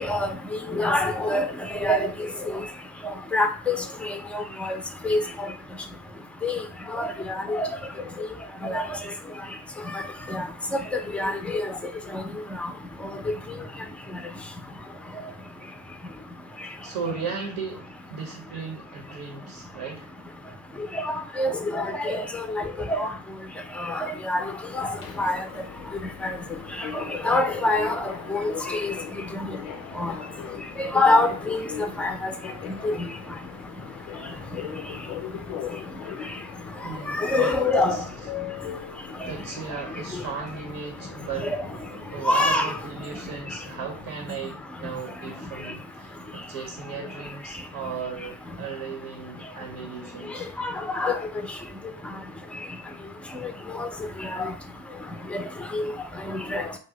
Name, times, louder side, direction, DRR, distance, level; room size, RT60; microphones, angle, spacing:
voice 1, 0.7-1.5 1.8-2.1 3.3-3.8 4.3-4.8 5.0-5.2 6.4-6.6 6.9-7.1 7.5-7.7 8.6-8.8 10.3-10.4 10.9-11.3 21.4-22.2 22.5-22.6 22.9-23.1 23.9-24.4 24.8-24.9 25.2-25.4 26.2-26.3 27.2-28.0 28.3-28.9 30.0-30.1 30.8-31.6 32.0-32.3 32.8-32.9 37.1-38.0 42.3-42.7 50.6-51.1 53.8-53.9 54.4-54.5 55.3-55.4 55.7-55.8 56.3-56.6, left 2 dB, 5° left, 0.4 m, -24 dB
voice 2, 16.8-20.2 36.8-37.6 37.9-38.3 39.3-41.6 42.1-50.5, right 5 dB, 60° right, 0.7 m, -36 dB
Subway metro underground, 24.7-44.1, left 9 dB, 80° left, 0.5 m, -40 dB
2.5 x 2.0 x 3.8 m
hypercardioid pair, 45°, 41 cm